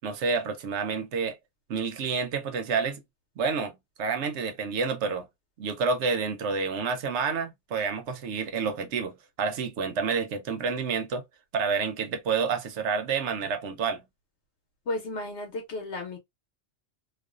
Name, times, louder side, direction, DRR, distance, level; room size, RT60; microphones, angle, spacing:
voice 1, 0.0-1.4 1.7-3.0 3.4-5.3 5.6-11.2 11.5-14.0, right 5 dB, 80° right, 0.9 m, -29 dB
voice 2, 14.9-16.2, left 2 dB, 75° left, 1.0 m, -33 dB
2.5 x 2.4 x 2.3 m
omnidirectional pair, 1.2 m